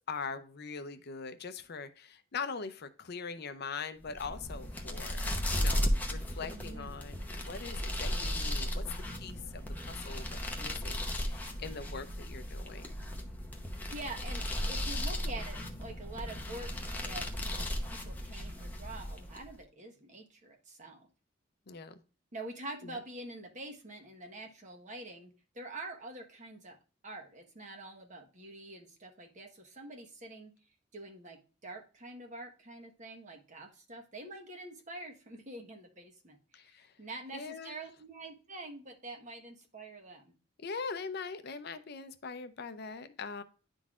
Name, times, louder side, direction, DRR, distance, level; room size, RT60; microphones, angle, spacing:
voice 1, 0.1-8.8 9.1-12.8 21.7-22.0 22.8-23.0 36.5-36.9 37.3-37.7 40.6-43.4, left 5 dB, 55° left, 10 dB, 0.6 m, -42 dB
sound 1, 4.0-19.5, equal, 10° left, 0.8 m, -36 dB
voice 2, 6.5-6.9 13.9-16.7 17.0-21.1 22.3-26.8 27.0-30.5 30.9-40.3, right 2 dB, 40° right, 2 dB, 1.2 m, -46 dB
10.5 x 3.9 x 2.4 m, 0.35 s
head